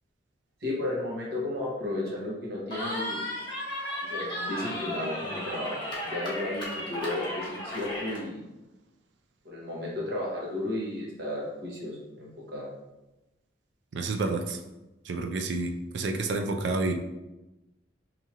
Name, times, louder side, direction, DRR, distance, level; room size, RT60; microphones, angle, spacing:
voice 1, 0.6-3.2 4.0-5.7 6.0-8.4 9.4-12.7, left 1 dB, 60° right, -5 dB, 1.3 m, -33 dB
Cheering, 2.7-8.2, left 1 dB, 25° left, 1.1 m, -34 dB
voice 2, 13.9-14.6 15.1-16.9, right 3 dB, 75° right, 5 dB, 0.5 m, -29 dB
4.8 x 2.8 x 2.9 m, 0.99 s
head